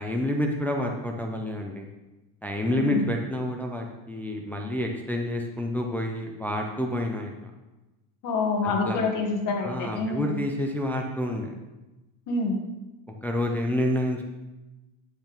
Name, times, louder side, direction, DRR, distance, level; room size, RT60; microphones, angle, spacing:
voice 1, 0.0-1.9 2.4-7.5 8.6-9.0 9.6-11.5 13.2-14.3, left 1 dB, 5° left, 1 dB, 0.4 m, -29 dB
voice 2, 2.7-3.0 8.2-10.3 12.3-12.6, left 3 dB, 45° left, 1 dB, 1.7 m, -27 dB
8.8 x 8.0 x 3.5 m, 1.1 s
cardioid pair, 155°, 44 cm